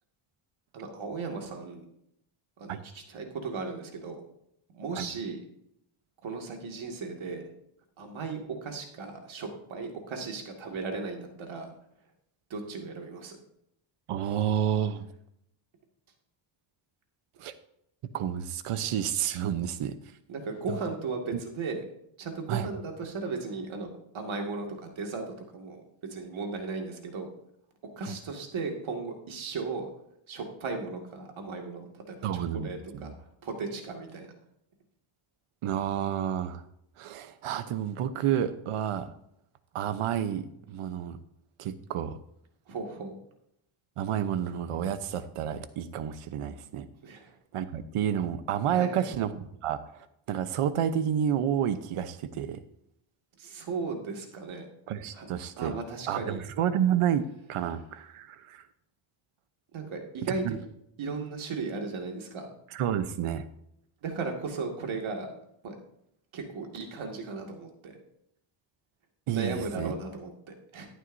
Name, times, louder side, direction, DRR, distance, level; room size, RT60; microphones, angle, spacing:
voice 1, 0.7-1.9 2.6-4.2 4.7-5.4 6.2-7.5 8.0-11.7 12.5-13.4 20.3-21.8 22.2-25.8 26.1-27.3 28.0-29.9 30.3-34.3 42.7-43.1 47.0-47.3 48.7-49.1 53.4-54.7 55.1-55.3 55.6-56.4 59.7-60.7 61.0-62.5 64.0-65.3 65.6-65.7 66.3-68.0 69.3-70.9, right 4 dB, 65° right, 2 dB, 2.3 m, -36 dB
voice 2, 14.1-15.1 17.4-17.5 18.1-20.0 22.5-22.7 28.0-28.1 32.2-33.1 35.6-36.6 37.0-39.1 39.7-41.2 41.6-42.2 44.0-46.9 47.5-52.6 54.9-55.7 56.1-58.6 60.4-60.6 62.7-63.4 69.3-69.9, right 9 dB, 85° right, 11 dB, 1.0 m, -30 dB
12.5 x 11.0 x 2.7 m, 0.76 s
cardioid pair, 130°, 50 cm